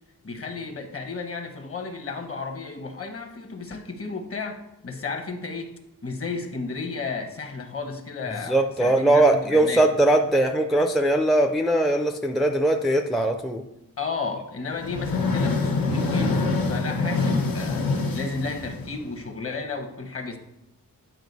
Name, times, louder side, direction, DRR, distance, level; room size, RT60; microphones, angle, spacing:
voice 1, 0.2-9.9 14.0-17.9 18.1-20.4, left 4 dB, 40° left, 5 dB, 1.0 m, -33 dB
voice 2, 8.5-13.6, right 1 dB, ahead, 4 dB, 0.4 m, -20 dB
sound 1, 14.7-19.3, left 3 dB, 80° left, 1.1 m, -25 dB
9.2 x 4.8 x 4.0 m, 0.88 s
wide cardioid pair, 140°, 34 cm